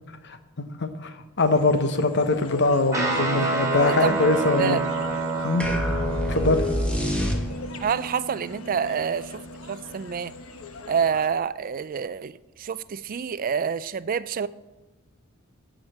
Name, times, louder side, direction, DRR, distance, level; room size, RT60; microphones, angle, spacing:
voice 1, 0.6-4.8 5.4-5.7 6.3-6.6, left 2 dB, 55° left, 1.0 m, -22 dB
sound 1, 1.4-11.3, left 3 dB, 85° left, 1.0 m, -41 dB
Guitar, 2.9-10.6, right 3 dB, 15° right, 2.6 m, -30 dB
voice 2, 3.9-4.2 4.6-4.8 7.8-9.4 9.7-10.3 10.9-14.5, right 7 dB, 40° right, 0.4 m, -27 dB
sound 2, 5.6-7.9, left 1 dB, 5° left, 1.3 m, -26 dB
14.0 x 5.1 x 7.4 m
head